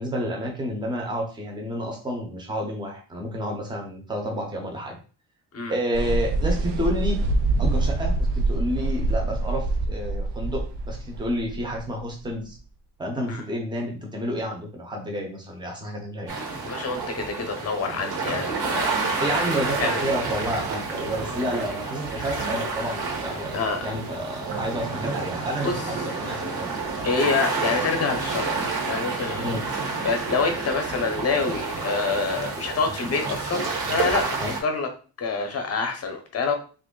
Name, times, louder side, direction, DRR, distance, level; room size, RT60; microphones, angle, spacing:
voice 1, 0.0-5.0 5.7-7.2 7.6-12.6 13.0-16.3 19.2-26.7 29.4-29.6 34.4-34.5, equal, 10° right, 1 dB, 0.6 m, -30 dB
sound 1, 5.9-12.6, right 2 dB, 80° right, 0.6 m, -25 dB
sound 2, 16.3-34.6, right 4 dB, 60° right, 1.0 m, -29 dB
voice 2, 16.7-19.3 19.8-20.1 22.2-22.3 23.5-23.9 25.6-26.1 27.0-34.9 35.2-36.5, left 4 dB, 35° left, 5 dB, 0.7 m, -27 dB
3.0 x 2.6 x 3.7 m, 0.37 s
wide cardioid pair, 170°, 41 cm